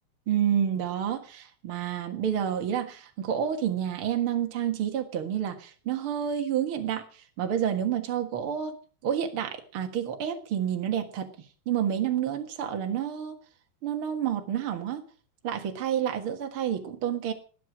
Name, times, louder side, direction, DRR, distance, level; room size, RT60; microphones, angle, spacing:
voice 1, 0.3-7.0 7.4-8.8 9.0-11.3 11.6-13.4 13.8-15.0 15.4-17.3, right 9 dB, 65° right, 5 dB, 1.3 m, -29 dB
19.5 x 9.3 x 6.1 m, 0.40 s
omnidirectional pair, 5.0 m